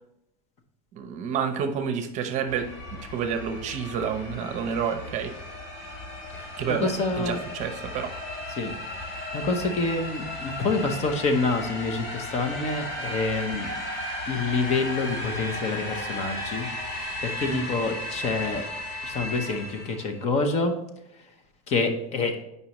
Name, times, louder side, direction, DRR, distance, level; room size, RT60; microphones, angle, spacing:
voice 1, 0.9-2.7 3.1-5.3 6.6-8.1 17.5-17.7, right 7 dB, 40° right, 8 dB, 0.7 m, -29 dB
sound 1, 2.5-20.2, left 1 dB, 55° left, 2.3 m, -35 dB
voice 2, 6.3-7.4 8.6-8.7 9.3-13.8 14.3-16.7 16.9-18.6 19.0-20.7 21.7-22.4, left 3 dB, 35° left, 5 dB, 0.8 m, -27 dB
8.2 x 5.5 x 3.0 m, 0.84 s
supercardioid pair, 150°, 19 cm